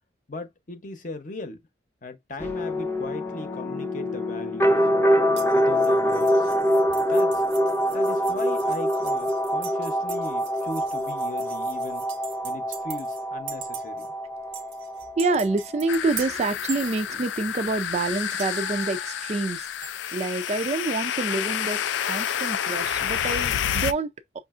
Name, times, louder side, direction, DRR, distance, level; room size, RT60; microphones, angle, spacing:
voice 1, 0.3-1.6 2.0-5.2 5.5-6.5 6.9-7.4 7.9-12.1 12.4-14.1, left 2 dB, 45° left, 0.8 m, -38 dB
sound 1, 2.4-16.0, equal, 10° left, 0.5 m, -25 dB
sound 2, 5.4-13.2 13.5-14.1 14.5-17.5 18.3-20.0, right 9 dB, 85° right, 0.8 m, -42 dB
voice 2, 15.2-19.7 20.1-24.1, right 3 dB, 35° right, 0.3 m, -27 dB
sound 3, 15.9-23.9, left 9 dB, 75° left, 0.3 m, -29 dB
5.6 x 2.4 x 2.4 m
head